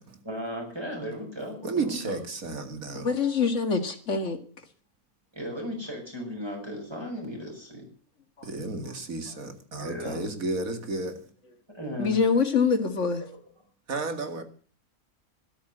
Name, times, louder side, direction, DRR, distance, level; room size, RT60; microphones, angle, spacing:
voice 1, 0.2-2.2 5.3-7.8 9.8-10.2 11.7-12.2, equal, 15° right, 7.3 m, -36 dB
voice 2, 1.6-3.1 8.4-11.3 13.9-14.4, right 3 dB, 70° right, 2.6 m, -32 dB
voice 3, 2.9-4.4 12.0-13.2, left 5 dB, 55° left, 2.3 m, -24 dB
13.0 x 12.5 x 8.0 m
omnidirectional pair, 1.5 m